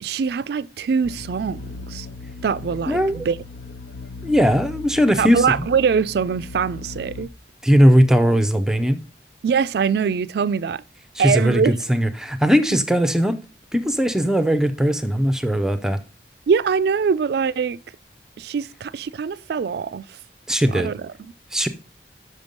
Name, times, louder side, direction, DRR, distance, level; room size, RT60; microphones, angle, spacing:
voice 1, 0.0-2.1 2.4-3.4 5.2-7.3 9.4-10.8 11.2-11.8 16.5-17.8 18.4-20.2 20.7-21.3, right 6 dB, 60° right, 0.3 m, -23 dB
sound 1, 1.0-7.3, left 3 dB, 70° left, 0.5 m, -37 dB
voice 2, 2.9-3.2 4.2-5.7 7.6-9.0 11.2-13.4 13.7-16.0 20.5-20.9 21.5-21.7, equal, 5° right, 0.5 m, -19 dB
6.5 x 5.2 x 5.2 m
head